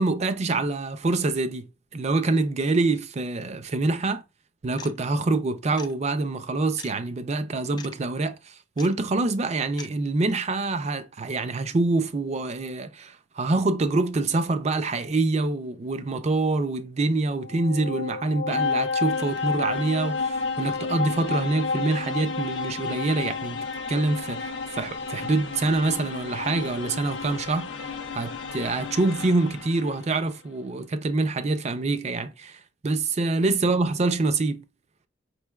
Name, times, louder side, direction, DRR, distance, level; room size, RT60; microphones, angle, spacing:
voice 1, 0.0-4.2 4.6-23.6 23.9-34.6, right 3 dB, 35° right, 0.5 m, -26 dB
sound 1, 4.8-5.0 5.8-5.9 6.8-6.9 7.8-7.9 8.8-8.9 9.8-9.9, left 6 dB, 25° left, 0.3 m, -41 dB
sound 2, 17.3-30.1, left 4 dB, 80° left, 0.5 m, -31 dB
5.1 x 3.2 x 2.3 m
head